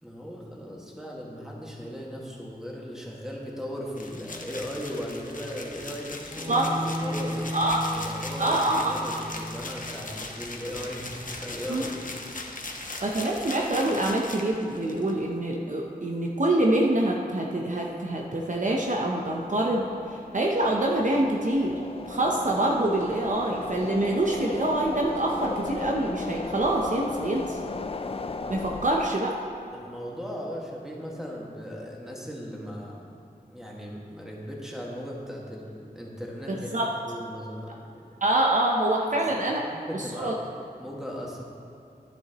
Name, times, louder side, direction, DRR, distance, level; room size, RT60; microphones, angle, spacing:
voice 1, 0.0-7.6 7.9-11.9 12.6-13.0 29.7-33.1 33.5-36.7 37.0-38.0 39.6-40.4 40.8-41.4, equal, 5° right, -3 dB, 1.8 m, -37 dB
sound 1, 3.9-15.1, left 2 dB, 55° left, 0.9 m, -39 dB
Bowed string instrument, 6.3-12.3, equal, 20° right, 0.9 m, -37 dB
voice 2, 6.5-6.8 7.5-7.9 8.4-8.9 11.7-11.8 13.0-19.9 20.3-21.7 22.1-27.6 28.5-29.3 36.7-36.9 38.2-39.6 39.9-40.3, right 1 dB, 50° right, -1 dB, 0.8 m, -25 dB
sound 2, 17.6-29.1, left 3 dB, 35° left, 0.4 m, -37 dB
10.5 x 9.5 x 3.0 m, 2.6 s
wide cardioid pair, 55°, 16 cm